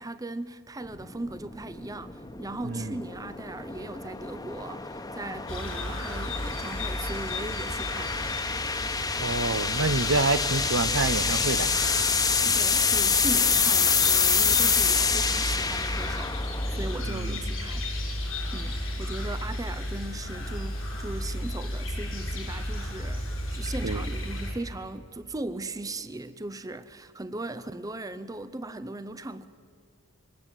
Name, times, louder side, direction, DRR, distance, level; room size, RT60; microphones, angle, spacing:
voice 1, 0.0-8.2 12.3-16.4 16.7-17.9 18.5-29.5, right 2 dB, 20° right, 0.7 m, -38 dB
sound 1, 0.9-17.1, left 5 dB, 20° left, 1.2 m, -27 dB
voice 2, 2.6-3.0 9.2-11.7 17.1-17.6 23.8-24.0, right 3 dB, 75° right, 1.0 m, -28 dB
sound 2, 5.5-24.5, left 1 dB, 90° left, 6.8 m, -34 dB
24.0 x 20.5 x 9.1 m
head